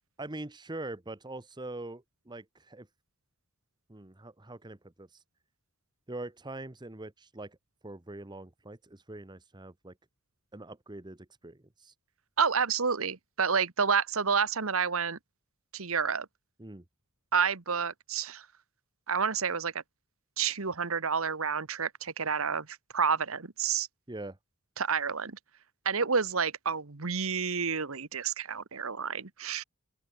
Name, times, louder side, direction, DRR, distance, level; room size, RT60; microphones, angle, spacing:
voice 1, 0.2-2.9 3.9-5.1 6.1-7.6 7.8-9.9 10.5-11.9 16.6-16.8 24.1-24.4, right 2 dB, 20° right, 1.0 m, -43 dB
voice 2, 12.4-15.2 15.7-16.3 17.3-18.4 19.1-19.7 20.4-23.9 24.8-25.4 25.8-29.6, right 6 dB, 65° right, 1.3 m, -29 dB
open air
head